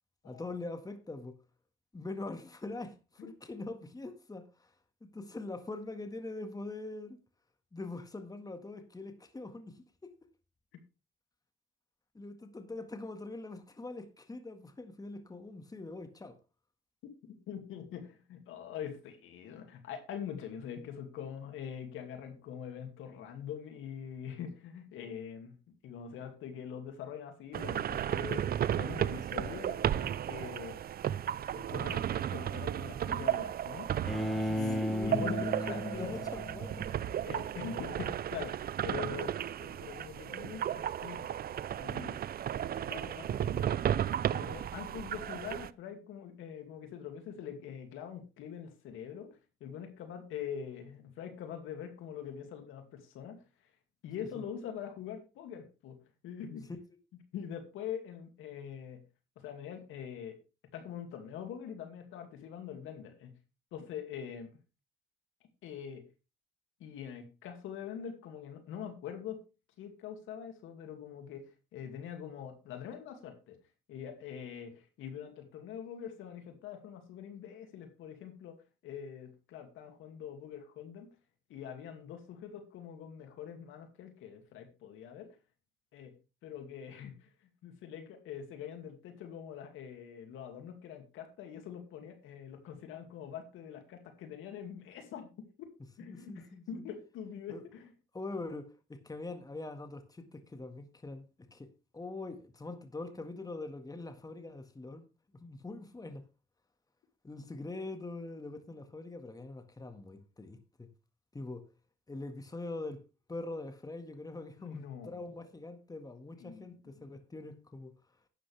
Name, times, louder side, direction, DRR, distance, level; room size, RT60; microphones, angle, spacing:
voice 1, 0.2-1.4 1.9-4.7 5.0-7.2 7.7-10.2 12.1-16.4 34.4-36.9 54.2-54.4 96.1-96.8 97.5-97.6 98.1-105.0 105.3-106.3 107.2-110.9 111.3-111.7 112.1-113.0 113.3-117.9, left 2 dB, 20° left, 1.8 m, -43 dB
voice 2, 17.5-30.8 31.6-33.9 34.5-36.2 37.2-38.6 38.8-41.4 41.8-42.2 42.7-43.8 44.3-53.4 54.0-56.0 56.2-56.7 57.3-59.0 59.4-60.4 60.7-63.3 63.7-64.5 65.6-66.1 66.8-69.4 69.8-73.6 73.9-78.6 78.8-81.1 81.5-85.4 85.9-86.1 86.4-87.3 87.6-95.7 96.0-97.9 114.6-115.4 116.4-117.0, left 8 dB, 90° left, 2.5 m, -44 dB
sound 1, 27.5-45.7, right 10 dB, 50° right, 0.5 m, -34 dB
Bowed string instrument, 34.1-37.1, left 1 dB, ahead, 1.8 m, -35 dB
11.5 x 9.7 x 3.5 m
cardioid pair, 90°, 20 cm